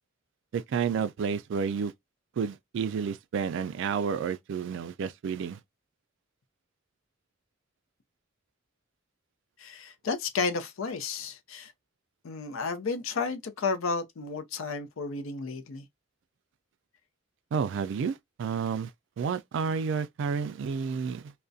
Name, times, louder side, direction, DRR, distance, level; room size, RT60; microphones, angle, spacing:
voice 1, 0.5-1.9 2.4-5.6 17.5-18.9 19.2-21.3, right 6 dB, 65° right, 0.3 m, -30 dB
voice 2, 9.6-11.7 12.2-15.9, left 4 dB, 85° left, 0.5 m, -32 dB
2.3 x 2.1 x 2.5 m
head